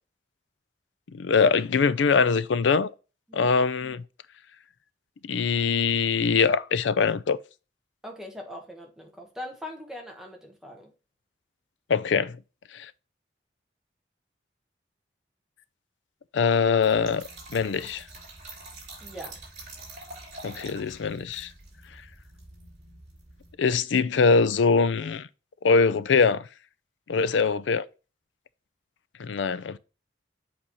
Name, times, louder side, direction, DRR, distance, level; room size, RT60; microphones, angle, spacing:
voice 1, 1.1-2.9 3.3-4.0 5.2-7.4 11.9-12.4 12.7-12.9 16.3-17.2 17.5-18.0 20.4-21.5 23.6-25.3 25.6-26.4 27.1-27.8 29.2-29.8, left 5 dB, 90° left, 0.5 m, -23 dB
voice 2, 8.0-10.9 19.0-19.4 27.2-27.5, left 1 dB, ahead, 1.2 m, -41 dB
Trickle dribble / Fill (with liquid), 16.8-23.6, right 2 dB, 40° right, 2.7 m, -46 dB
7.6 x 4.2 x 3.0 m
head